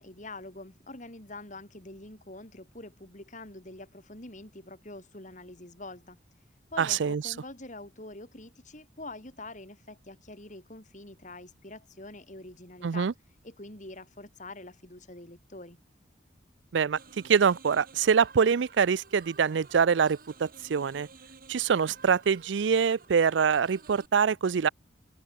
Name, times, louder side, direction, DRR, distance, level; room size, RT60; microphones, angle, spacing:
voice 1, 0.0-6.2 6.7-13.1 13.4-15.8, left 2 dB, 40° left, 4.8 m, -45 dB
voice 2, 6.8-7.3 12.8-13.1 16.7-17.0 17.2-21.1 21.5-24.7, right 6 dB, 80° right, 0.5 m, -24 dB
sound 1, 17.0-24.1, right 4 dB, 50° right, 2.6 m, -53 dB
open air
head